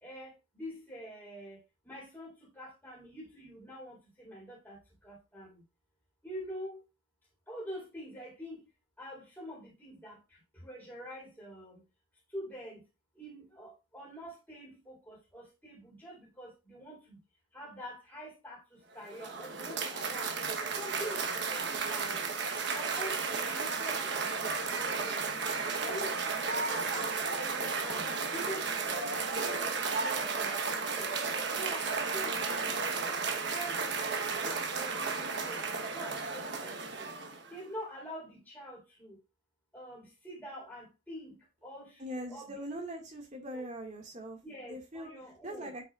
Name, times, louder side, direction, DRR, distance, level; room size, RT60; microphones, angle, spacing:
voice 1, 0.0-5.6 6.2-6.9 7.5-8.6 9.0-11.8 12.3-12.8 13.2-17.2 17.5-20.3 20.7-22.2 22.7-25.5 25.8-27.1 27.4-29.3 29.6-31.1 31.5-33.2 33.5-35.6 35.9-37.1 37.5-39.2 39.7-42.0 42.3-42.6 43.5-43.7 44.4-45.7, equal, 10° left, 4.1 m, -46 dB
Cheering / Applause, 18.9-37.6, right 4 dB, 60° right, 1.2 m, -33 dB
voice 2, 42.0-44.4 44.7-45.8, equal, 40° right, 2.1 m, -41 dB
8.5 x 6.1 x 2.5 m
head